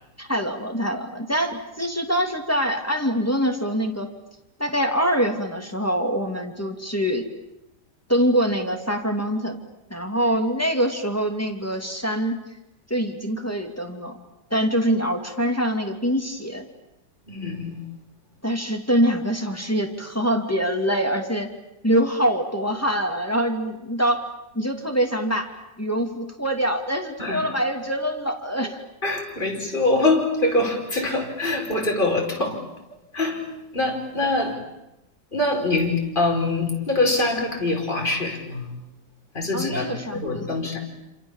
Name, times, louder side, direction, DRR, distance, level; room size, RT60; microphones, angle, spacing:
voice 1, 0.2-4.1 4.6-7.3 8.1-9.6 9.9-12.4 12.9-14.2 14.5-16.6 18.4-21.5 21.8-24.2 24.5-25.5 25.8-28.8 34.2-34.3 39.5-40.6, equal, 10° left, 4 dB, 2.5 m, -24 dB
voice 2, 17.3-17.8 27.2-27.5 29.0-32.6 33.1-33.4 33.7-34.6 35.3-38.7 39.3-39.9 40.1-40.8, left 2 dB, 25° left, 0 dB, 5.6 m, -24 dB
28.0 x 27.5 x 7.3 m, 0.92 s
omnidirectional pair, 1.9 m